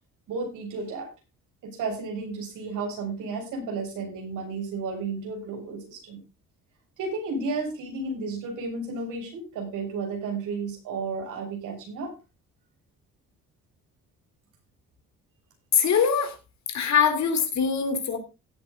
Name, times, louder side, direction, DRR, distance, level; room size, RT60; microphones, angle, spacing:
voice 1, 0.3-1.1 1.6-6.2 7.0-12.1, right 4 dB, 85° right, 2 dB, 7.0 m, -32 dB
voice 2, 15.7-16.3 16.7-18.2, left 7 dB, 65° left, 7 dB, 3.7 m, -23 dB
17.0 x 8.3 x 3.9 m, 0.29 s
cardioid pair, 90°, 30 cm